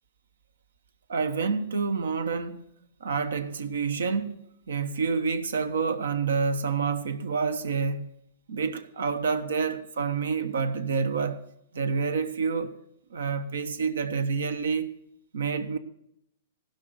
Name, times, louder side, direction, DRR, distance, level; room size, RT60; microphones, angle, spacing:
voice 1, 1.1-2.6 3.0-4.4 4.7-8.1 8.5-11.4 11.7-12.8 13.1-14.9 15.3-15.8, right 5 dB, 80° right, 1.2 m, -28 dB
15.5 x 6.8 x 8.2 m
hypercardioid pair, 130°, 0 cm